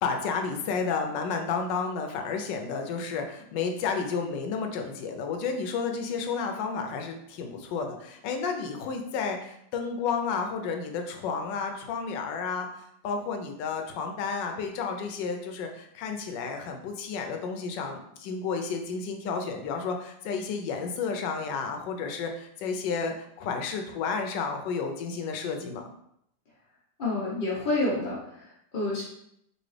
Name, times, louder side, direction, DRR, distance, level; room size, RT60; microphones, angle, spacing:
voice 1, 0.0-25.9, left 5 dB, 75° left, 4 dB, 1.2 m, -31 dB
voice 2, 27.0-29.0, left 2 dB, 55° left, -6 dB, 0.6 m, -29 dB
4.1 x 2.7 x 3.2 m, 0.74 s
omnidirectional pair, 2.0 m